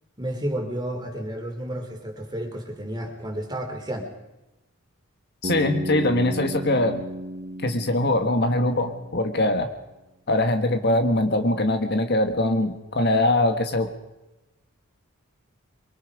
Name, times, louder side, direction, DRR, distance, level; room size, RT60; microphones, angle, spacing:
voice 1, 0.2-4.1, right 1 dB, 20° right, 3 dB, 3.3 m, -31 dB
voice 2, 5.4-7.0 7.6-9.7 10.3-13.9, left 1 dB, 50° left, 6 dB, 1.5 m, -22 dB
Bass guitar, 5.4-9.4, equal, 35° right, 1.4 m, -34 dB
23.5 x 23.5 x 4.9 m, 0.99 s
head